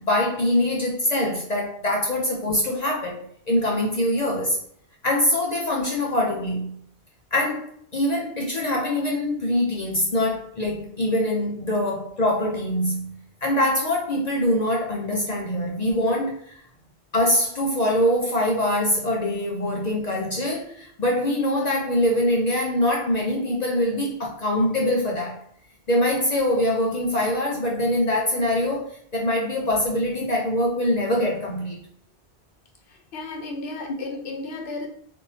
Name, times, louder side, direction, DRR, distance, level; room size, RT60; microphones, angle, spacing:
voice 1, 0.0-4.6 5.0-6.8 7.3-13.1 13.4-16.6 17.1-25.4 25.9-31.8, left 1 dB, 50° left, -1 dB, 0.6 m, -23 dB
voice 2, 32.9-34.9, left 3 dB, 75° left, 3 dB, 0.9 m, -34 dB
3.6 x 2.5 x 2.7 m, 0.64 s
omnidirectional pair, 1.1 m